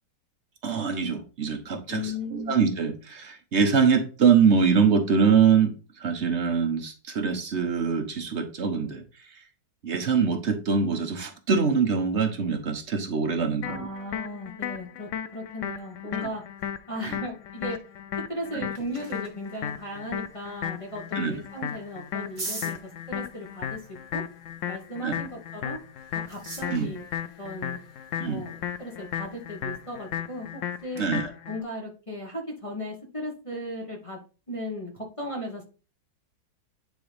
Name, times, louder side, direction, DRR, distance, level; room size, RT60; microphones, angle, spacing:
voice 1, 0.6-9.0 9.8-13.9 16.2-16.3 17.1-17.2 18.5-18.7 21.1-21.4 25.0-25.2 26.6-26.9 28.2-28.4 31.0-31.3, right 6 dB, 45° right, 5 dB, 1.1 m, -24 dB
voice 2, 1.9-2.6 13.6-16.4 16.9-17.8 18.3-23.8 24.1-24.2 24.7-25.8 26.1-27.1 27.4-27.8 28.2-31.0 31.4-34.2 34.5-35.6, left 1 dB, 20° left, -2 dB, 1.2 m, -36 dB
sound 1, 13.6-31.6, left 9 dB, 75° left, 0.7 m, -35 dB
sound 2, 18.3-30.9, right 2 dB, 30° right, 1.7 m, -46 dB
9.6 x 3.7 x 3.4 m, 0.35 s
omnidirectional pair, 1.9 m